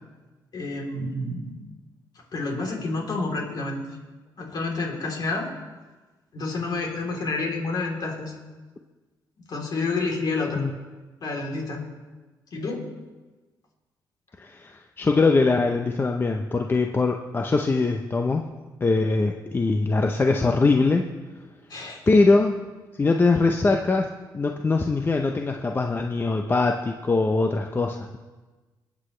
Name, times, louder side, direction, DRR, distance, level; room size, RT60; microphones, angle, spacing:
voice 1, 0.5-1.5 2.3-4.0 4.4-5.5 6.3-8.4 9.5-10.6 11.2-11.8 12.5-12.9 21.7-22.0, left 3 dB, 55° left, -1 dB, 3.4 m, -29 dB
voice 2, 14.4-18.4 18.8-21.1 22.1-22.6 23.0-28.2, left 3 dB, 25° left, 3 dB, 0.7 m, -22 dB
22.5 x 8.5 x 3.3 m, 1.3 s
cardioid pair, 85°, 8 cm